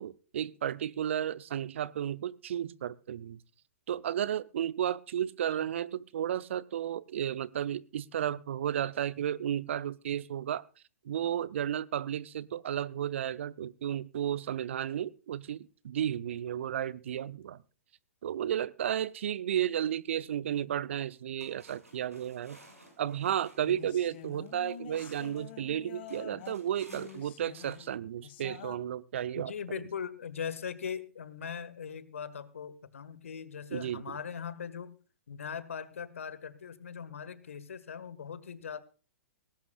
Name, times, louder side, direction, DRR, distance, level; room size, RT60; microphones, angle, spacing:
voice 1, 0.0-3.4 3.9-10.6 11.0-17.6 18.2-22.6 23.0-29.5 33.7-34.2, right 10 dB, 55° right, 19 dB, 0.8 m, -33 dB
sound 1, 20.9-21.0 21.4-25.5 26.1-27.7, right 1 dB, 90° right, 6.4 m, -57 dB
sound 2, 23.7-28.8, left 10 dB, 50° left, 1.8 m, -47 dB
voice 2, 29.3-35.0 35.3-38.8, left 7 dB, 65° left, 15 dB, 1.7 m, -40 dB
19.0 x 17.0 x 2.4 m, 0.35 s
figure-of-eight pair, 110°, 8 cm